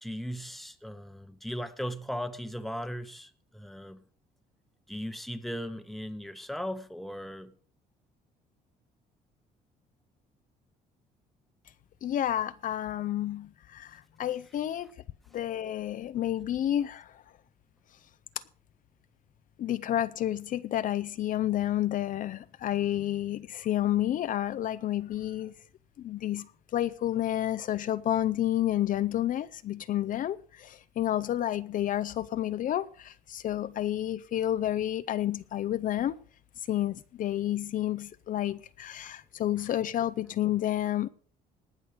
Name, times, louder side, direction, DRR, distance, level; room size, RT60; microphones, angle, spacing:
voice 1, 0.0-4.0 4.9-7.5, equal, ahead, 1.0 m, -37 dB
voice 2, 12.0-14.9 15.3-17.2 19.6-25.5 26.0-36.2 36.6-41.1, left 12 dB, 50° left, 0.5 m, -30 dB
19.0 x 6.4 x 5.0 m
cardioid pair, 110°, 17 cm